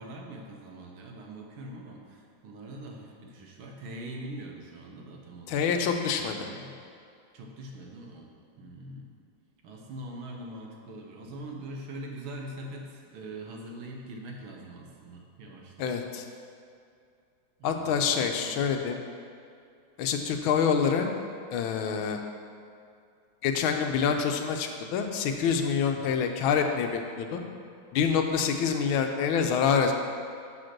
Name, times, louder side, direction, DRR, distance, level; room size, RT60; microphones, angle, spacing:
voice 1, 0.0-5.7 6.2-6.8 7.3-8.3 8.6-9.1 9.6-15.9 16.2-16.3 17.6-18.1 18.4-18.7 26.0-26.3, right 1 dB, 85° right, 1 dB, 1.8 m, -43 dB
voice 2, 5.5-6.5 15.8-16.2 17.6-19.0 20.0-21.1 21.5-22.2 23.4-27.4 27.9-29.9, left 6 dB, 85° left, 5 dB, 1.5 m, -26 dB
6.5 x 5.1 x 5.9 m, 2.4 s
omnidirectional pair, 2.2 m